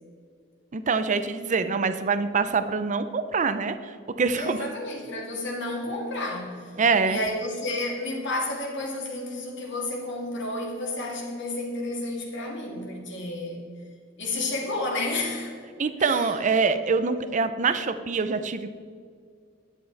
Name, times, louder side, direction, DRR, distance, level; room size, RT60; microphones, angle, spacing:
voice 1, 0.7-4.7 6.8-7.2 15.8-18.8, right 4 dB, 40° right, 11 dB, 0.5 m, -25 dB
voice 2, 4.3-6.7 7.0-13.6 14.2-15.5 16.0-16.4, left 2 dB, 60° left, -1 dB, 2.3 m, -31 dB
11.0 x 9.3 x 4.0 m, 2.1 s
head